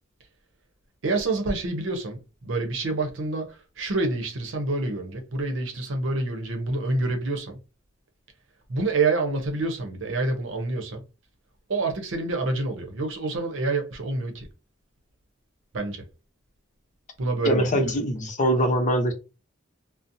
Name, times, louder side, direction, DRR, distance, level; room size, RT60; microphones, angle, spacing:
voice 1, 1.0-7.6 8.7-11.0 11.7-14.5 15.7-16.0 17.2-17.8, right 3 dB, 90° right, 0.7 m, -27 dB
voice 2, 17.4-19.1, equal, 40° left, 0.7 m, -23 dB
2.5 x 2.0 x 2.7 m
head